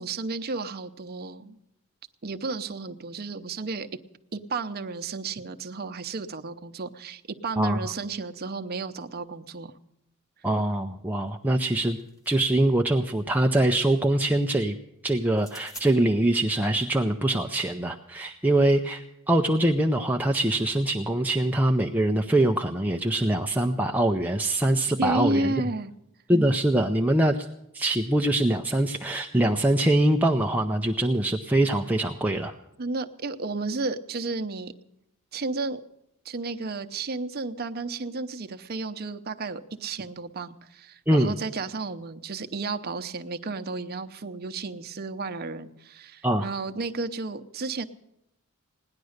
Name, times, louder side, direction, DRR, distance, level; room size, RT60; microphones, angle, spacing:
voice 1, 0.0-1.6 2.2-3.9 4.3-9.7 25.0-25.9 32.8-34.7 35.3-35.8 36.2-47.9, right 3 dB, 45° right, 8 dB, 0.7 m, -32 dB
voice 2, 7.6-7.9 10.4-12.0 12.3-14.8 15.0-25.5 26.3-27.4 27.7-32.5 41.1-41.4 46.2-46.5, right 1 dB, 10° right, 3 dB, 0.5 m, -23 dB
sound 1, 11.3-12.6 15.3-15.9, equal, 15° left, 1.3 m, -47 dB
17.5 x 10.5 x 6.5 m, 0.83 s
head